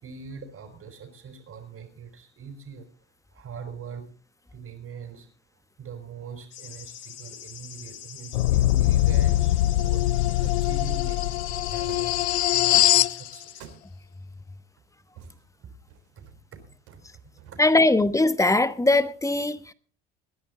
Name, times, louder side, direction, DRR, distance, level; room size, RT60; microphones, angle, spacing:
voice 1, 0.0-2.9 3.3-4.1 4.5-5.3 5.8-13.6 15.6-15.7 16.2-16.6 16.9-17.0 17.5-17.6, right 6 dB, 45° right, 4.5 m, -42 dB
sound 1, 6.5-13.7, left 9 dB, 50° left, 1.9 m, -44 dB
sound 2, 8.3-13.2, left 15 dB, 85° left, 0.5 m, -22 dB
sound 3, 11.9-12.2 12.7-13.1 13.6-14.1 15.2-16.3 16.9-17.9, right 7 dB, 70° right, 3.8 m, -46 dB
voice 2, 17.6-19.7, left 2 dB, 10° left, 1.2 m, -21 dB
21.5 x 10.5 x 3.9 m
hypercardioid pair, 65°, 32 cm